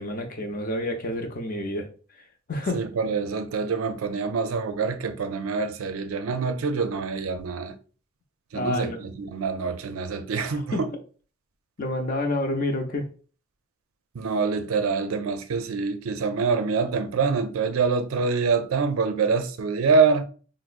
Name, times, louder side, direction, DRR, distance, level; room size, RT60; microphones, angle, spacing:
voice 1, 0.0-1.9 2.5-2.8 8.5-9.0 10.5-10.8 11.8-13.1, left 1 dB, 40° left, 0.6 m, -28 dB
voice 2, 2.7-7.8 8.5-10.9 14.1-20.2, right 5 dB, 80° right, 0.4 m, -25 dB
4.6 x 2.0 x 2.4 m
head